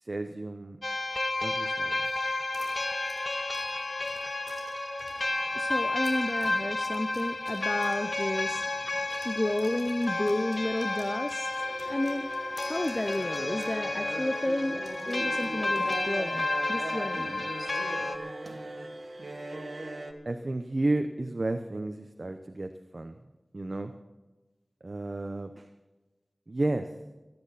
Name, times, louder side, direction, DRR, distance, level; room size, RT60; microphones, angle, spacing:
voice 1, 0.0-0.8 1.4-2.1 20.2-23.2 23.5-23.9 24.8-25.7 26.5-26.9, right 2 dB, 55° right, 6 dB, 0.8 m, -32 dB
sound 1, 0.8-18.2, left 2 dB, 55° left, 1.5 m, -31 dB
sound 2, 2.5-5.4 5.9-8.8 9.1-13.8 14.1-14.2 14.8-16.5, left 2 dB, 90° left, 3.6 m, -54 dB
voice 2, 5.5-17.8, left 1 dB, 35° left, 9 dB, 0.7 m, -32 dB
sound 3, 11.6-20.1, right 2 dB, 70° right, 1.8 m, -39 dB
24.0 x 10.5 x 4.1 m, 1.1 s
wide cardioid pair, 45°, 0 cm